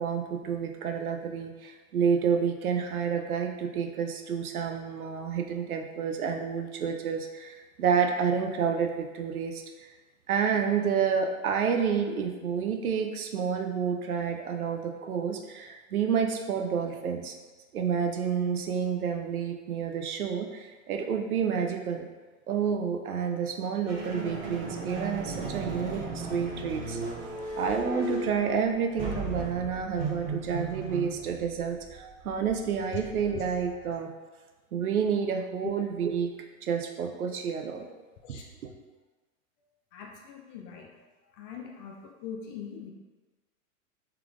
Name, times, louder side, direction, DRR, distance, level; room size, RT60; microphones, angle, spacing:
voice 1, 0.0-9.9 10.3-17.4 17.7-22.1 22.5-27.0 27.6-34.1 34.7-36.3 36.6-37.9 38.3-38.7, right 6 dB, 90° right, 4 dB, 0.5 m, -29 dB
sound 1, 23.9-34.0, right 2 dB, 25° right, 0.8 m, -37 dB
voice 2, 39.9-41.1 41.4-42.9, left 8 dB, 40° left, 0 dB, 0.5 m, -41 dB
3.6 x 3.3 x 2.4 m, 1.3 s
hypercardioid pair, 100°, 42 cm